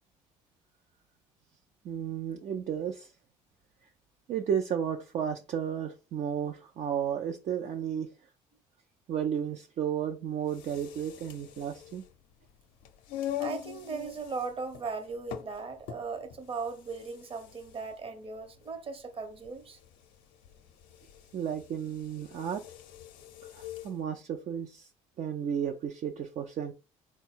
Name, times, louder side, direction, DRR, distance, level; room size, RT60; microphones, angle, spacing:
voice 1, 1.8-3.1 4.3-8.1 9.1-12.0 21.3-22.6 23.5-24.9 25.2-26.7, right 8 dB, 55° right, 0.6 m, -33 dB
sound 1, 10.4-24.0, left 11 dB, 80° left, 0.5 m, -44 dB
voice 2, 13.4-19.8, right 4 dB, 40° right, 1.0 m, -38 dB
3.9 x 2.3 x 4.4 m
supercardioid pair, 70°, 14 cm